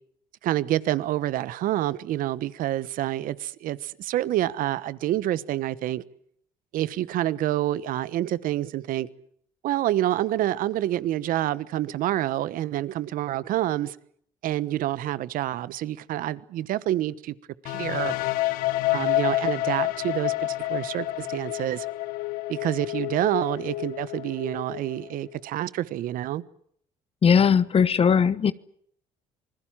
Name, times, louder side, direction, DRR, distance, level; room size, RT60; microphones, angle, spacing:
voice 1, 0.4-6.0 6.7-9.1 9.6-14.0 14.4-17.3 17.6-18.1 18.9-21.9 22.5-26.4, right 13 dB, 70° right, 1.2 m, -27 dB
sound 1, 17.7-25.4, left 18 dB, 80° left, 1.2 m, -29 dB
voice 2, 27.2-28.5, left 7 dB, 40° left, 1.1 m, -19 dB
27.0 x 20.5 x 7.4 m
supercardioid pair, 80°, 15 cm